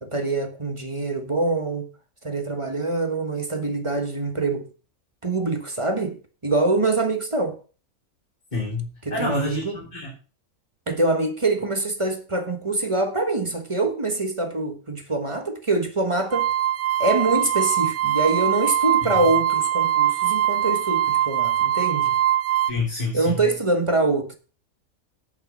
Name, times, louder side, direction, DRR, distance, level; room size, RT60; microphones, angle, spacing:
voice 1, 0.0-1.9 2.2-4.7 5.2-6.2 6.4-7.6 9.0-9.8 10.9-16.5 17.0-22.2 23.1-24.4, right 2 dB, 25° right, 1.3 m, -24 dB
voice 2, 8.5-9.6 9.9-10.1 19.0-19.2 22.7-23.3, left 3 dB, 30° left, 4.0 m, -28 dB
sound 1, 16.3-22.7, right 12 dB, 65° right, 0.9 m, -22 dB
9.0 x 6.6 x 7.1 m
omnidirectional pair, 1.4 m